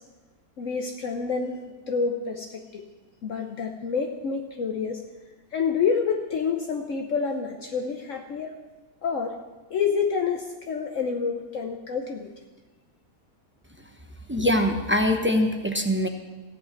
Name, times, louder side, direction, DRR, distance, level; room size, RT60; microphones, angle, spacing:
voice 1, 0.6-2.8 3.2-5.1 5.5-8.6 9.0-9.4 9.7-12.3 14.4-14.5, left 5 dB, 60° left, 4 dB, 1.2 m, -28 dB
voice 2, 14.3-16.1, left 1 dB, 10° right, 4 dB, 0.7 m, -23 dB
14.5 x 5.9 x 8.7 m, 1.2 s
omnidirectional pair, 1.5 m